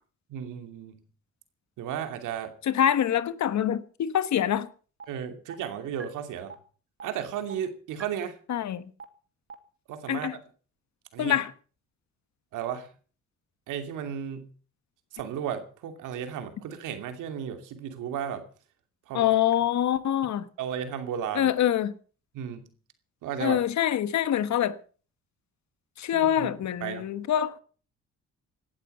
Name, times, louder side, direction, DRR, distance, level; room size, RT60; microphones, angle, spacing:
voice 1, 0.3-1.1 1.8-2.6 5.1-6.5 7.0-8.4 9.9-10.4 11.1-11.4 12.5-12.9 13.7-14.5 15.1-18.4 19.1-19.3 20.6-21.5 22.3-22.7 23.2-23.6 26.1-26.5 26.8-27.1, right 9 dB, 90° right, 2.8 m, -34 dB
voice 2, 2.7-4.7 8.5-8.8 10.1-10.3 11.2-11.5 19.1-20.5 21.3-21.9 23.4-24.8 26.0-27.6, left 10 dB, 65° left, 1.4 m, -25 dB
sound 1, 5.0-5.1 5.5-5.6 6.0-6.1 6.5-6.6 7.0-7.1 7.5-7.6 8.0-8.1 8.5-8.6 9.0-9.1 9.5-9.6, right 5 dB, 45° right, 2.3 m, -41 dB
17.5 x 12.0 x 5.5 m
cardioid pair, 90°, 30 cm